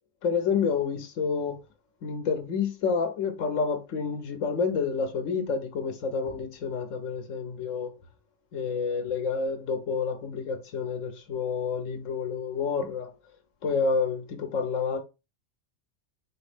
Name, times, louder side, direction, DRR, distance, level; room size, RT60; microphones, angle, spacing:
voice 1, 0.2-1.6 2.0-7.9 8.5-13.1 13.6-15.0, left 5 dB, 85° left, 1.2 m, -29 dB
4.6 x 3.0 x 3.3 m
omnidirectional pair, 1.3 m